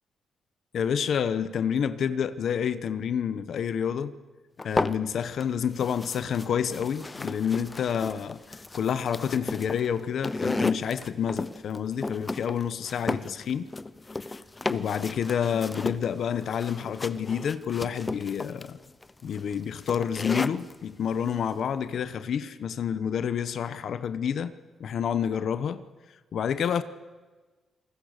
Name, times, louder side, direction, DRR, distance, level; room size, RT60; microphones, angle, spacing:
voice 1, 0.7-4.1 4.6-8.4 8.7-13.7 14.7-18.8 19.2-24.5 24.8-25.8 26.3-26.8, left 8 dB, 65° left, 12 dB, 1.1 m, -28 dB
sound 1, 4.6-5.4 5.7-20.7, left 3 dB, 20° left, 0.8 m, -34 dB
28.0 x 20.5 x 6.7 m, 1.3 s
cardioid pair, 125°, 0 cm